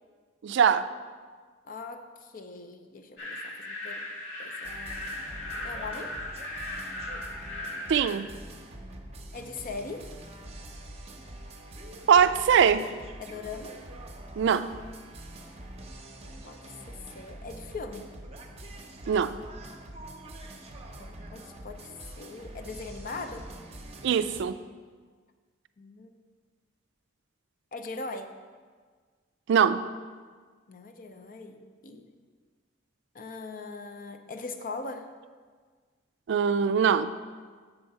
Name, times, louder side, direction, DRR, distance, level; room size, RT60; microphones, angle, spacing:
voice 1, 0.4-0.9 7.9-8.3 12.1-12.9 14.4-14.7 19.1-19.3 24.0-24.6 29.5-29.8 36.3-37.1, right 7 dB, 65° right, 13 dB, 0.3 m, -22 dB
voice 2, 1.6-4.0 4.4-5.0 5.6-6.1 9.3-10.1 13.2-13.8 16.4-18.1 21.0-23.5 25.8-26.1 27.7-28.3 30.7-32.1 33.1-35.1, left 3 dB, 45° left, 7 dB, 0.6 m, -40 dB
sound 1, 3.2-8.1, left 1 dB, 80° left, 2.1 m, -37 dB
sound 2, 4.6-24.4, right 1 dB, 35° right, 0.7 m, -45 dB
6.9 x 4.5 x 6.6 m, 1.5 s
head